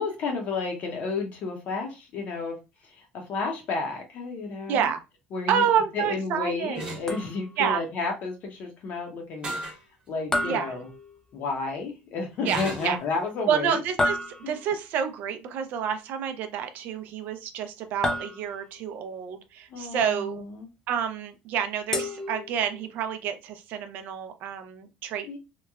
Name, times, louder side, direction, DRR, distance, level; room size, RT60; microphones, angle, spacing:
voice 1, 0.0-2.6 2.8-4.9 5.3-5.6 5.9-9.5 10.1-10.9 11.3-13.8 14.4-14.6 19.7-20.7 25.3-25.4, left 4 dB, 50° left, 0.7 m, -31 dB
voice 2, 4.7-5.0 5.5-6.8 7.6-7.8 10.4-10.7 12.4-13.0 13.5-14.2 14.5-20.4 20.9-25.4, right 8 dB, 60° right, 0.4 m, -28 dB
sound 1, 6.7-7.1 9.4-9.8 10.4-10.5 12.4-13.0, right 2 dB, 30° right, 1.1 m, -34 dB
sound 2, 7.1-7.7 10.3-11.6 14.0-14.9 18.0-18.9 21.9-22.9, left 1 dB, 15° left, 0.4 m, -31 dB
2.9 x 2.1 x 2.3 m
cardioid pair, 145°, 4 cm